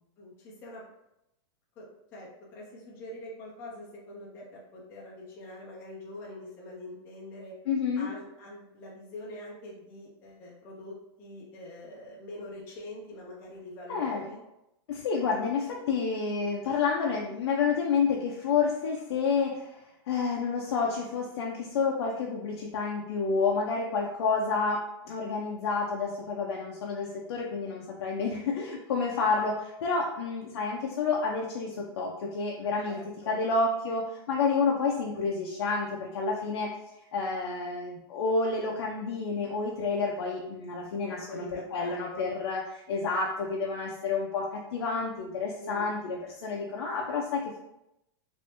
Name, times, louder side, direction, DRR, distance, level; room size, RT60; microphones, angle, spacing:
voice 1, 0.2-0.8 1.8-7.5 8.0-14.4 32.8-33.4 41.1-42.4 45.6-45.9, left 1 dB, 15° left, -5 dB, 0.4 m, -44 dB
voice 2, 7.7-8.1 13.9-14.2 14.9-19.8 20.1-33.0 33.3-36.7 37.1-42.6 42.9-47.6, left 4 dB, 80° left, -2 dB, 0.5 m, -29 dB
3.2 x 2.6 x 2.8 m, 0.87 s
supercardioid pair, 175°, 14 cm